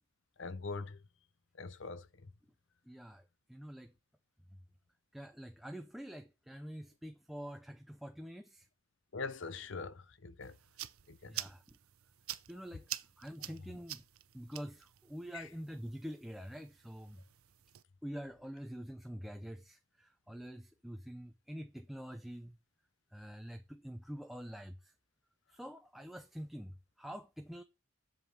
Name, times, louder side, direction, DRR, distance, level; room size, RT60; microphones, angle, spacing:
voice 1, 0.4-1.0 1.6-2.1 9.1-10.5 11.1-11.3 15.3-15.4, left 4 dB, 60° left, 0.7 m, -42 dB
voice 2, 2.9-3.9 5.1-8.7 11.2-11.8 12.5-12.9 13.2-14.0 14.3-17.2 18.0-22.6 23.1-24.9 25.5-27.6, equal, ahead, 0.5 m, -46 dB
sound 1, 10.4-17.8, right 14 dB, 85° right, 0.7 m, -48 dB
8.1 x 7.2 x 7.4 m
head